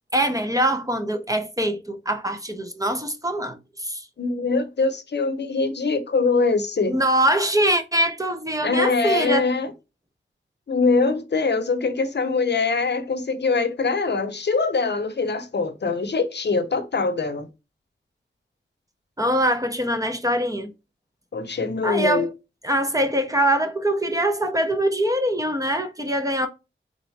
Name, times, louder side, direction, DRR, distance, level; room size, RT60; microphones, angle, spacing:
voice 1, 0.1-4.1 6.9-9.5 19.2-20.7 21.8-22.3 22.6-26.5, right 1 dB, 15° right, 0.6 m, -23 dB
voice 2, 4.2-7.0 8.6-9.7 10.7-17.5 21.3-22.3, left 4 dB, 55° left, 0.8 m, -23 dB
4.1 x 3.6 x 3.2 m
wide cardioid pair, 105°, 21 cm